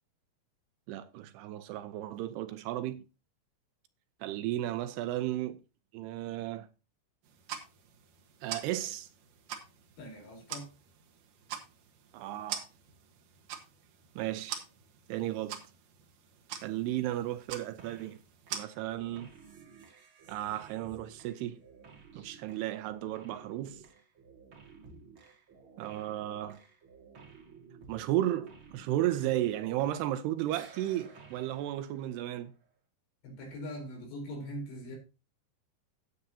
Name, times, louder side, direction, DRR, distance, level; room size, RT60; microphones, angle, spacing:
voice 1, 0.9-3.0 4.2-5.6 5.9-6.7 8.4-9.1 12.1-12.7 14.2-14.6 15.1-15.6 16.6-18.2 18.5-19.3 20.3-21.6 22.2-23.8 25.8-26.6 27.9-32.5, right 14 dB, 80° right, 2.6 m, -34 dB
sound 1, 7.2-18.6, right 9 dB, 60° right, 2.6 m, -45 dB
voice 2, 10.0-10.7 33.2-35.0, equal, 75° left, 6.3 m, -41 dB
sound 2, 17.8-18.2 18.5-30.2 30.5-32.7, right 5 dB, 40° right, 2.1 m, -55 dB
15.0 x 8.0 x 2.8 m
omnidirectional pair, 5.0 m